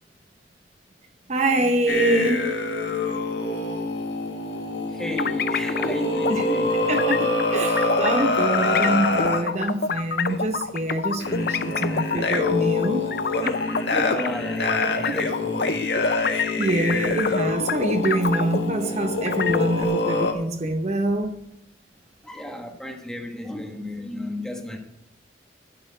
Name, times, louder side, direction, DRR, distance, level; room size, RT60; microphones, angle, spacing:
voice 1, 1.3-2.5 6.3-6.4 6.9-13.1 13.4-13.6 16.3-21.3, right 1 dB, 40° right, 0.9 m, -25 dB
sound 1, 1.9-9.4 10.3-10.5 11.2-20.3, left 3 dB, 75° left, 1.7 m, -25 dB
voice 2, 4.9-7.1 11.7-13.0 13.6-16.3 22.2-24.8, left 1 dB, 5° left, 1.2 m, -34 dB
sound 2, 5.2-6.0 6.2-6.5 7.0-8.2 8.5-14.3 14.7-18.9 19.2-19.8, left 5 dB, 55° left, 0.5 m, -27 dB
10.5 x 7.0 x 7.6 m
head